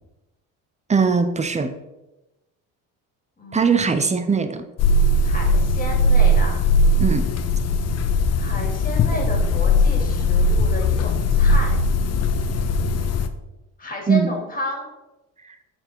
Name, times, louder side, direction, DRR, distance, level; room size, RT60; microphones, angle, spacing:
voice 1, 0.9-1.7 3.5-4.6 7.0-7.3 14.1-14.3, right 5 dB, 20° right, 9 dB, 0.7 m, -20 dB
voice 2, 3.4-4.2 5.2-6.6 8.3-11.8 13.8-14.9, left 1 dB, 20° left, 0 dB, 2.7 m, -32 dB
sound 1, 4.8-13.3, left 1 dB, 45° left, 0.7 m, -19 dB
7.7 x 4.5 x 4.5 m, 1.0 s
supercardioid pair, 85°, 37 cm